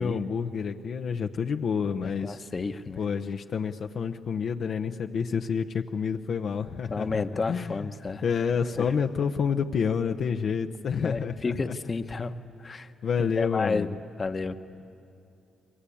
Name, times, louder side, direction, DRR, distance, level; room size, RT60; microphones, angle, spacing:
voice 1, 0.0-2.4 3.0-7.9 8.2-11.8 13.0-13.9, left 6 dB, 60° left, 5 dB, 0.8 m, -29 dB
voice 2, 2.0-3.0 6.9-8.2 8.8-8.9 11.0-12.3 12.6-12.9 13.4-13.9 14.2-14.6, left 4 dB, 30° left, 8 dB, 1.1 m, -31 dB
28.5 x 22.0 x 8.6 m, 2.5 s
cardioid pair, 90°, 0 cm